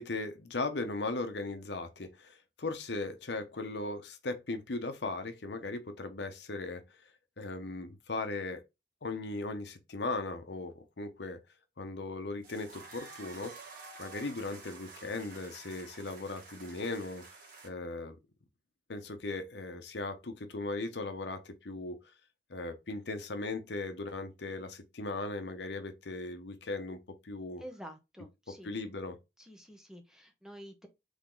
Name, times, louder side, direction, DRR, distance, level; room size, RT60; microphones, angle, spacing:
voice 1, 0.0-6.8 7.4-8.6 9.0-11.4 11.8-13.5 14.0-17.2 17.6-18.2 18.9-22.1 22.5-27.6 28.6-29.2, left 3 dB, 75° left, 0.9 m, -38 dB
sound 1, 12.4-17.7, right 3 dB, 50° right, 1.8 m, -50 dB
voice 2, 27.6-28.7 29.4-30.9, equal, 5° right, 0.8 m, -49 dB
3.8 x 3.5 x 3.7 m
head